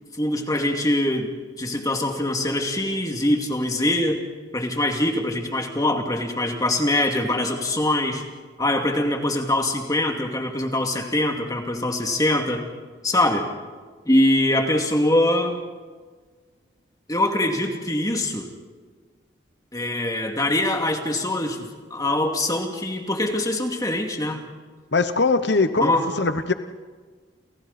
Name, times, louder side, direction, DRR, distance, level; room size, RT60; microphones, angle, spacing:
voice 1, 0.2-1.3 1.6-4.2 4.5-8.2 8.6-12.6 13.0-13.5 14.1-15.6 17.1-18.5 19.7-24.4 25.8-26.1, left 1 dB, 20° left, 3 dB, 2.6 m, -23 dB
voice 2, 24.9-25.9 26.2-26.5, left 3 dB, 60° left, 10 dB, 1.0 m, -21 dB
30.0 x 28.5 x 4.3 m, 1.5 s
head